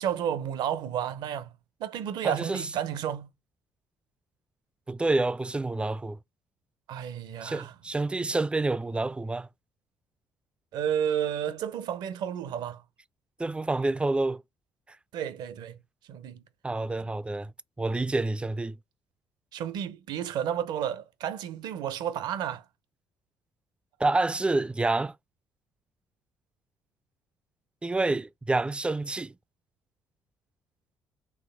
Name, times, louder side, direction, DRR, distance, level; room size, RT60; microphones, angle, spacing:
voice 1, 0.0-1.5 1.8-3.3 6.9-7.7 10.7-12.8 15.1-15.8 16.1-16.4 19.5-22.6, right 9 dB, 65° right, 0.8 m, -31 dB
voice 2, 2.2-2.7 4.9-6.2 7.4-9.5 13.4-14.4 16.6-17.5 17.8-18.8 24.0-25.1 27.8-29.3, right 2 dB, 15° right, 0.4 m, -28 dB
4.6 x 3.2 x 3.6 m
hypercardioid pair, 55°, 8 cm